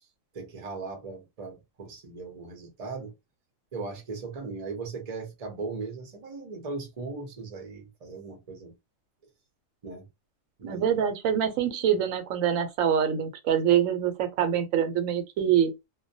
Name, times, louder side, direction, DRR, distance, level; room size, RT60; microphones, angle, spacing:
voice 1, 0.3-3.1 3.7-8.7 9.8-10.1 10.6-10.8, right 4 dB, 35° right, 0.6 m, -38 dB
voice 2, 10.6-15.7, right 9 dB, 85° right, 1.0 m, -25 dB
2.2 x 2.1 x 2.6 m
omnidirectional pair, 1.3 m